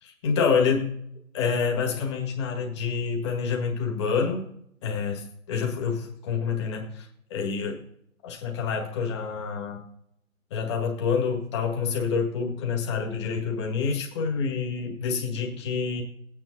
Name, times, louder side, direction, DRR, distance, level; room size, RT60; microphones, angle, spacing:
voice 1, 0.0-0.9 1.3-4.5 4.8-7.8 8.2-9.8 10.5-16.0, left 5 dB, 20° left, 0 dB, 1.8 m, -27 dB
17.0 x 9.4 x 2.8 m, 0.73 s
hypercardioid pair, 160°, 41 cm